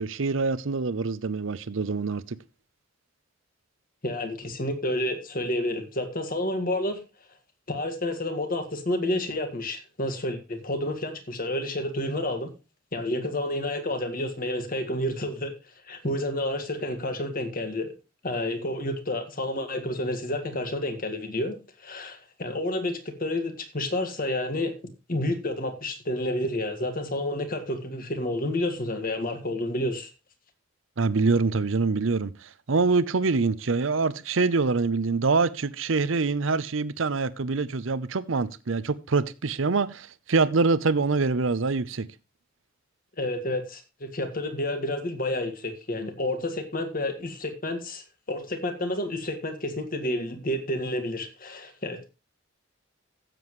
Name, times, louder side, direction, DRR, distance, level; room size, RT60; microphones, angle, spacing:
voice 1, 0.0-2.4 31.0-42.1, right 4 dB, 70° right, 0.7 m, -25 dB
voice 2, 4.0-7.0 7.7-12.5 12.9-15.5 15.9-17.9 18.2-24.7 25.1-30.1 43.2-52.1, left 1 dB, 45° left, 1.8 m, -30 dB
15.5 x 7.7 x 3.1 m
head